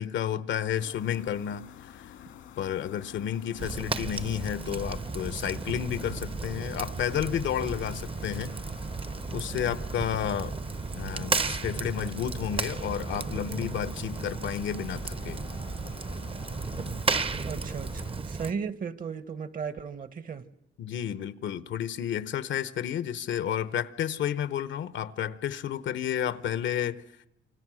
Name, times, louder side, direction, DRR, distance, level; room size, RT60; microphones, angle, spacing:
voice 1, 0.0-2.1 2.6-8.5 9.3-10.5 11.0-15.4 20.8-27.0, left 9 dB, 70° left, 1.0 m, -31 dB
sound 1, 0.7-18.1, left 9 dB, 90° left, 2.3 m, -49 dB
Fire, 3.6-18.5, right 4 dB, 30° right, 0.9 m, -34 dB
sound 2, 6.9-17.5, right 6 dB, 80° right, 3.0 m, -53 dB
voice 2, 17.4-20.5, right 6 dB, 45° right, 1.3 m, -36 dB
28.5 x 25.0 x 6.3 m
cardioid pair, 90°, 20 cm